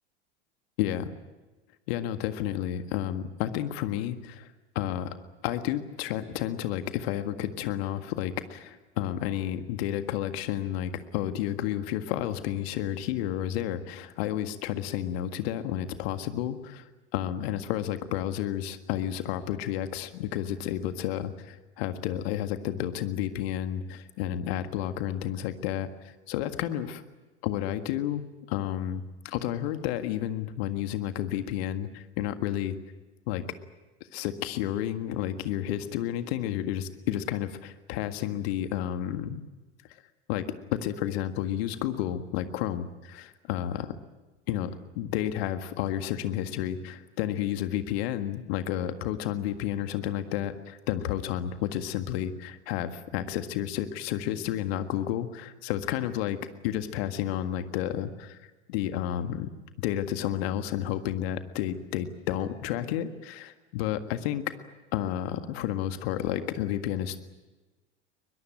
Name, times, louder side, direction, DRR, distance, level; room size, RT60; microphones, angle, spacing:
voice 1, 0.8-1.1 1.9-4.5 4.8-5.1 5.4-16.9 17.1-27.0 27.4-32.8 33.3-33.4 34.1-39.4 40.3-40.5 40.7-43.9 44.5-44.7 45.0-56.4 56.6-58.4 58.7-59.5 59.8-64.4 64.9-67.2, left 11 dB, 60° left, 9 dB, 1.8 m, -31 dB
22.5 x 22.0 x 9.0 m, 1.2 s
hypercardioid pair, 85°, 35 cm